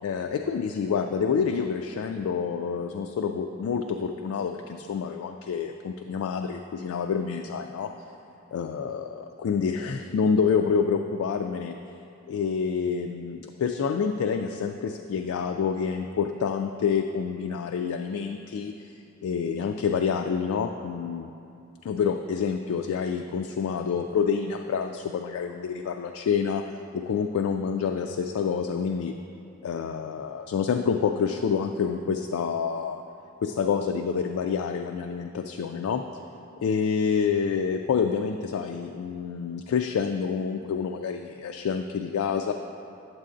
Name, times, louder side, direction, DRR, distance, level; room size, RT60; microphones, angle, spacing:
voice 1, 0.0-7.9 8.5-9.1 9.4-11.8 12.3-18.9 19.2-21.3 21.8-29.1 29.6-33.0 33.4-36.0 36.6-42.5, left 6 dB, 85° left, 5 dB, 0.3 m, -27 dB
9.4 x 7.3 x 2.5 m, 2.7 s
head